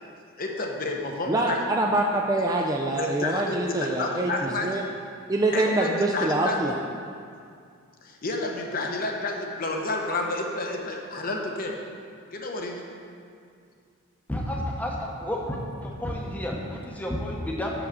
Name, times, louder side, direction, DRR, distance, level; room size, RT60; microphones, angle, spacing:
voice 1, 0.4-1.6 2.9-4.7 5.5-6.8 8.0-11.7 12.3-12.8, left 2 dB, 40° left, 1 dB, 0.8 m, -30 dB
voice 2, 1.3-4.8 5.3-6.7, right 2 dB, 15° right, 0 dB, 0.3 m, -25 dB
voice 3, 14.3-17.7, left 1 dB, 5° left, -2 dB, 0.8 m, -31 dB
6.3 x 5.9 x 6.7 m, 2.3 s
head